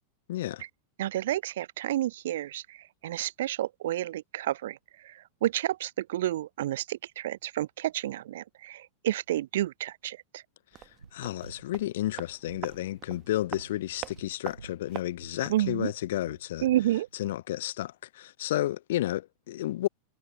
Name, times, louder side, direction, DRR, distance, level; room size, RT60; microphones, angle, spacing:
voice 1, 0.3-0.6 11.1-16.6 17.2-19.9, left 14 dB, 55° left, 0.4 m, -32 dB
voice 2, 1.0-10.4 15.5-15.9 16.6-17.1, right 13 dB, 55° right, 0.4 m, -30 dB
sound 1, 10.7-15.7 16.0-16.1, right 13 dB, 30° right, 1.1 m, -44 dB
sound 2, 11.0-17.3, right 5 dB, 75° right, 4.4 m, -51 dB
figure-of-eight pair, 90°, 0 cm